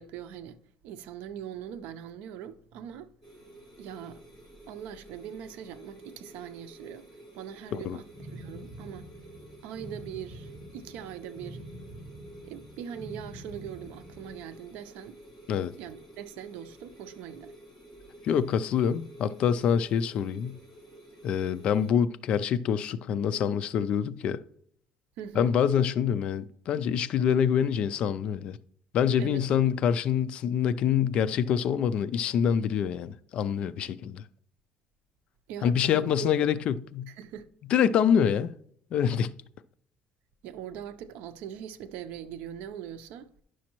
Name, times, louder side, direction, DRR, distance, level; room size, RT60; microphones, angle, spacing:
voice 1, 0.0-3.1 3.8-4.2 4.7-7.1 7.3-9.1 9.6-11.6 12.4-15.2 15.8-17.5 25.2-25.5 29.2-29.7 35.5-36.3 37.1-37.5 40.4-43.3, right 9 dB, 70° right, 0.6 m, -41 dB
sound 1, 3.2-21.9, right 1 dB, ahead, 3.3 m, -51 dB
sound 2, 8.1-14.4, right 1 dB, 35° right, 1.5 m, -46 dB
voice 2, 18.2-20.6 21.2-24.4 25.4-28.6 28.9-34.2 35.6-37.1 37.7-38.5 38.9-39.3, left 8 dB, 40° left, 0.3 m, -26 dB
10.5 x 6.2 x 3.0 m
cardioid pair, 180°, 3 cm